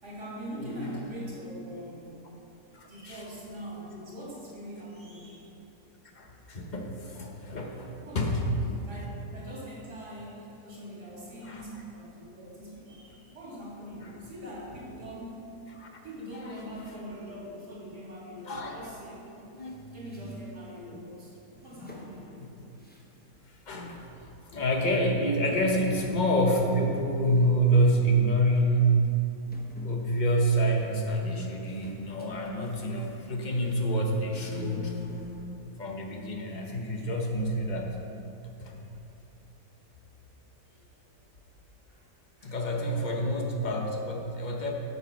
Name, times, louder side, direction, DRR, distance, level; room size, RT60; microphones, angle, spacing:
voice 1, 0.0-2.2 2.8-5.5 8.0-9.1 9.3-15.4 16.0-19.2 19.9-22.3 38.9-39.0 41.9-42.0 42.4-43.1, equal, 75° right, -6 dB, 3.4 m, -42 dB
voice 2, 0.6-1.0 2.7-3.2 6.1-8.5 11.4-11.6 14.0-14.2 15.7-15.9 16.3-16.8 18.5-18.9 19.5-19.7 22.3-22.5 23.7-24.0 24.5-29.1 29.8-35.0 35.8-38.0 38.6-38.8 42.4-44.7, right 1 dB, 30° left, 1 dB, 1.0 m, -27 dB
sound 1, 19.6-21.1 21.6-23.4 23.7-24.1 24.7-24.8 25.2-27.5 27.8-28.2 28.5-28.6 29.5-33.5 34.0-35.7, left 2 dB, 10° left, 0.6 m, -46 dB
8.8 x 7.0 x 5.9 m, 2.8 s
omnidirectional pair, 1.7 m